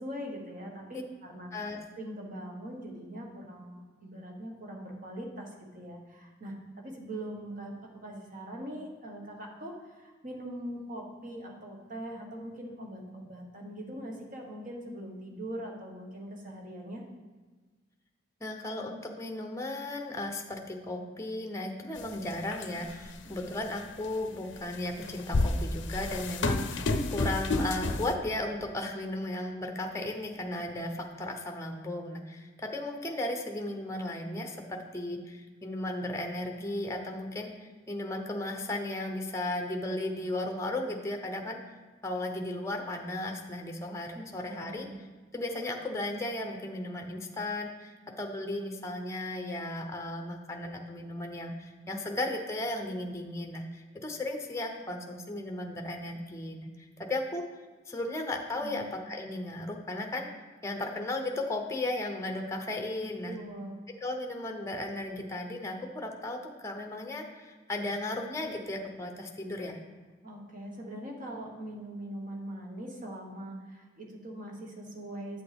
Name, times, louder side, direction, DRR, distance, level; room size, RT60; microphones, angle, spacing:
voice 1, 0.0-1.5 1.9-17.0 44.1-45.0 58.6-58.9 63.0-63.8 70.2-75.4, right 1 dB, 45° right, 0 dB, 1.4 m, -42 dB
voice 2, 18.4-41.6 42.0-44.9 45.3-56.7 57.0-57.5 57.9-60.3 60.6-63.3 64.0-69.8, left 1 dB, 15° left, 3 dB, 0.7 m, -35 dB
sound 1, 22.0-22.1 22.5-23.0 23.7-23.8 24.8-28.2, left 2 dB, 70° left, 0.6 m, -29 dB
8.3 x 7.5 x 3.5 m, 1.3 s
head